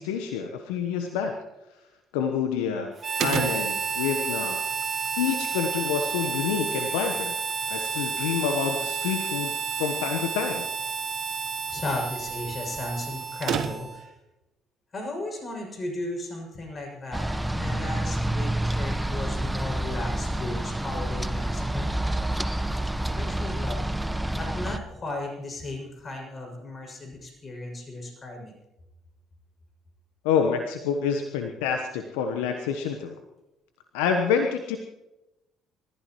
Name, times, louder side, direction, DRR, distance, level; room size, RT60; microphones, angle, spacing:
voice 1, 0.0-1.3 2.1-4.6 5.2-7.3 7.7-9.5 9.8-10.7 30.2-33.2 33.9-34.8, left 7 dB, 75° left, 5 dB, 1.1 m, -27 dB
Harmonica, 3.0-14.1, right 6 dB, 40° right, 1.7 m, -31 dB
sound 1, 3.2-14.1, right 8 dB, 60° right, 1.1 m, -38 dB
voice 2, 11.7-14.1 14.9-22.0 23.1-28.5, left 2 dB, 35° left, 2 dB, 6.8 m, -35 dB
sound 2, 17.1-24.8, right 1 dB, 10° right, 1.0 m, -28 dB
29.0 x 15.0 x 3.1 m, 0.97 s
hypercardioid pair, 55°, 0 cm